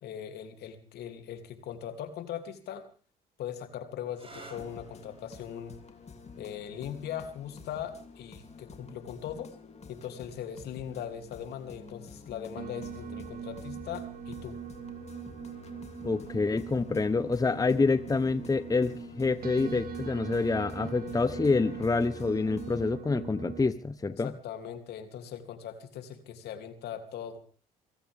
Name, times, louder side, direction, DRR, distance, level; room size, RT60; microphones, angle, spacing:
voice 1, 0.0-2.8 3.4-5.8 6.4-9.5 9.9-14.6 24.2-27.4, left 9 dB, 70° left, 6 dB, 2.9 m, -40 dB
sound 1, 4.1-11.5 12.5-13.0 16.6-16.9, right 2 dB, 30° right, 7.0 m, -57 dB
sound 2, 4.3-22.9, left 4 dB, 40° left, 3.0 m, -49 dB
sound 3, 12.6-23.7, right 7 dB, 55° right, 1.8 m, -41 dB
voice 2, 16.0-24.3, left 4 dB, 20° left, 14 dB, 0.9 m, -27 dB
25.0 x 16.0 x 3.6 m, 0.40 s
supercardioid pair, 65°, 18 cm